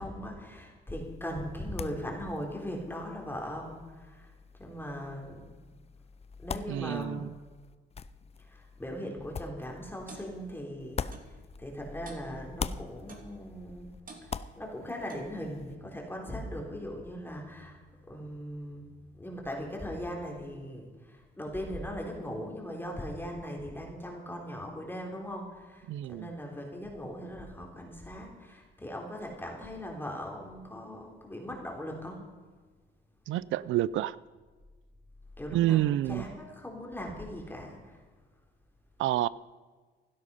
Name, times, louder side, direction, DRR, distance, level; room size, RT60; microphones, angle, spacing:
voice 1, 0.0-5.6 6.4-7.3 8.4-14.0 14.2-17.8 18.1-18.9 19.1-32.2 35.4-38.0, equal, 10° left, 3.7 m, -39 dB
sound 1, 0.9-12.1 12.3-15.8, left 6 dB, 30° left, 0.6 m, -44 dB
voice 2, 6.7-7.3 25.9-26.3 33.3-34.2 35.5-36.2 39.0-39.3, right 14 dB, 80° right, 0.5 m, -28 dB
Clock, 10.1-10.3 11.1-11.3 12.1-12.3 13.1-13.3 14.1-14.3 15.1-15.4, right 3 dB, 45° right, 2.8 m, -48 dB
16.0 x 12.0 x 5.6 m
cardioid pair, 90°, 20 cm